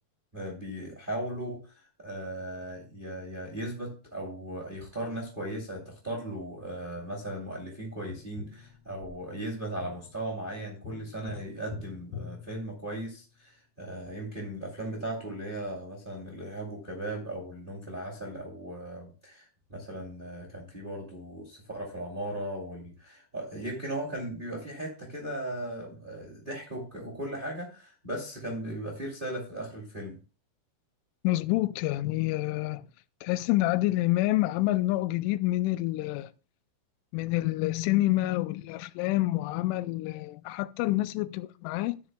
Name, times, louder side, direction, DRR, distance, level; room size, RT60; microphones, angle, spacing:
voice 1, 0.3-30.2, right 1 dB, 20° right, 1.2 m, -37 dB
Tap, 8.1-13.4 16.0-16.1, left 6 dB, 75° left, 3.8 m, -46 dB
voice 2, 31.2-32.8 33.2-36.3 37.1-42.0, left 17 dB, 90° left, 3.1 m, -27 dB
12.5 x 9.9 x 2.2 m
omnidirectional pair, 5.5 m